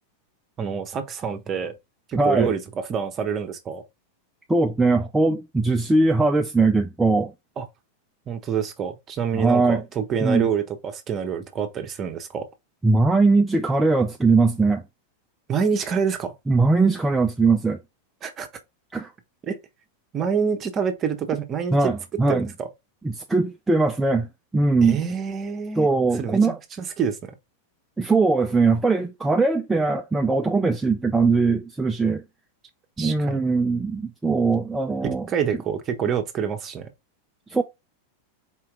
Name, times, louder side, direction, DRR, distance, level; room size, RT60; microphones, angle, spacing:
voice 1, 0.6-1.7 2.1-3.8 7.6-7.7 8.3-12.5 15.5-16.3 18.2-18.5 19.4-19.6 20.1-21.8 22.3-22.7 24.8-25.9 26.2-27.3 33.0-33.4 35.3-36.9, right 7 dB, 30° right, 1.0 m, -27 dB
voice 2, 2.1-2.5 4.5-7.3 9.3-9.8 10.2-10.5 12.8-14.8 16.5-17.8 18.9-19.1 21.7-22.5 23.0-24.3 24.5-25.0 25.8-26.6 28.0-32.2 33.0-35.3 37.5-37.6, right 3 dB, 10° right, 0.5 m, -20 dB
4.5 x 2.9 x 3.6 m
figure-of-eight pair, 90°, 0 cm